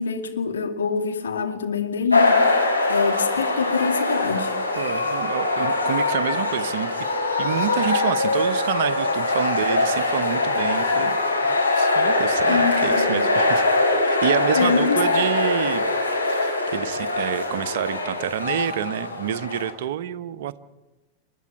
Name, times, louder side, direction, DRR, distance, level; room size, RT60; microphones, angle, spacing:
voice 1, 0.0-4.5 12.5-13.2 14.5-15.0, left 5 dB, 70° left, 2.5 m, -25 dB
sound 1, 2.1-19.7, left 2 dB, 85° left, 4.0 m, -22 dB
voice 2, 4.8-6.9 7.4-11.2 11.7-13.6 14.0-15.9 16.3-20.6, right 10 dB, 55° right, 0.9 m, -28 dB
29.0 x 11.0 x 9.7 m
figure-of-eight pair, 90°, 0 cm